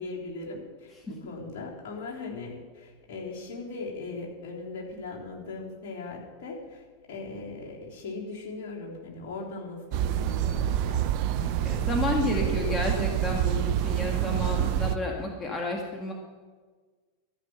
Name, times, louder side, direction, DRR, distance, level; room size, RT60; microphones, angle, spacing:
voice 1, 0.0-11.8 12.3-12.8, left 3 dB, 60° left, -3 dB, 3.7 m, -39 dB
sound 1, 9.9-15.0, right 11 dB, 55° right, 0.7 m, -27 dB
voice 2, 11.6-16.1, left 2 dB, 20° left, 0 dB, 1.8 m, -31 dB
14.0 x 6.2 x 9.0 m, 1.4 s
hypercardioid pair, 90°, 0 cm